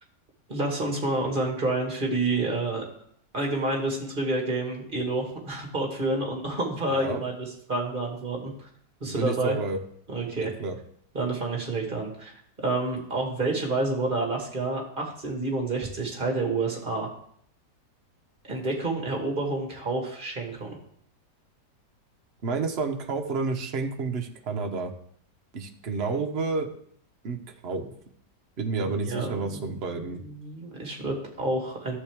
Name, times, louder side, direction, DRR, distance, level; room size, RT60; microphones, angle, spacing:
voice 1, 0.5-2.8 3.3-8.7 9.0-9.6 10.1-10.5 11.1-12.3 12.6-17.1 18.5-20.8 28.8-32.0, right 2 dB, 30° right, 0 dB, 1.8 m, -29 dB
voice 2, 6.9-7.2 9.0-9.8 10.4-10.8 22.4-24.9 25.5-26.7 27.2-27.9 28.6-30.2, right 4 dB, 45° right, 4 dB, 1.0 m, -30 dB
11.5 x 7.5 x 3.6 m, 0.65 s
omnidirectional pair, 1.8 m